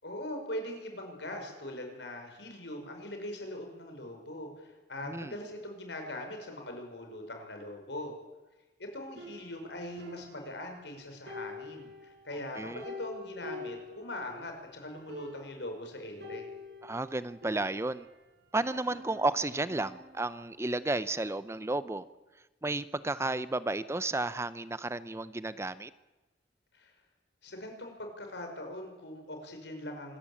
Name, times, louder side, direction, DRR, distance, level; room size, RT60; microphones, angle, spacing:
voice 1, 0.0-8.1 8.8-16.5 26.7-26.9 27.4-30.2, left 1 dB, 80° left, 4 dB, 5.3 m, -41 dB
voice 2, 5.0-5.4 12.6-12.8 16.8-18.1 18.5-22.0 22.6-25.9, right 2 dB, 15° right, 15 dB, 0.6 m, -32 dB
sound 1, 9.2-10.9 11.3-14.5 14.8-14.9 15.1-15.7 16.2-18.2 18.6-20.3, left 2 dB, 70° right, 4.8 m, -46 dB
25.5 x 13.5 x 8.7 m, 1.1 s
head